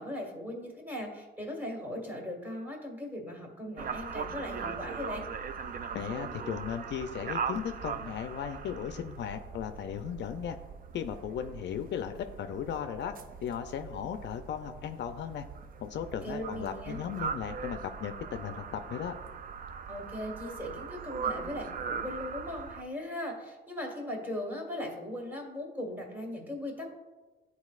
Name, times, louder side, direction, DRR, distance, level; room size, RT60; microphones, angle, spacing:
voice 1, 0.0-5.2 16.2-17.0 19.9-26.9, left 1 dB, 10° right, 0 dB, 1.8 m, -38 dB
sound 1, 3.8-22.8, right 6 dB, 45° right, 0.4 m, -40 dB
voice 2, 5.9-10.6 10.9-13.1 13.4-15.4 15.8-19.2, left 8 dB, 65° left, 8 dB, 0.4 m, -36 dB
10.5 x 4.1 x 2.4 m, 1.2 s
cardioid pair, 90°, 20 cm